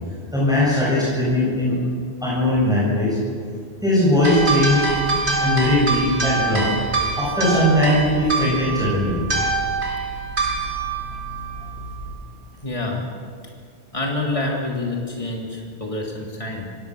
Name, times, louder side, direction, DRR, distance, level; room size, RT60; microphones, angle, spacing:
voice 1, 0.3-1.7 2.2-3.2 3.8-6.6 7.2-9.2, left 1 dB, 5° right, -8 dB, 7.9 m, -19 dB
sound 1, 4.2-12.1, right 3 dB, 80° right, 5.2 m, -25 dB
voice 2, 12.6-13.0 13.9-16.7, left 2 dB, 30° left, -1 dB, 3.1 m, -27 dB
25.0 x 19.5 x 6.5 m, 2.2 s
omnidirectional pair, 1.1 m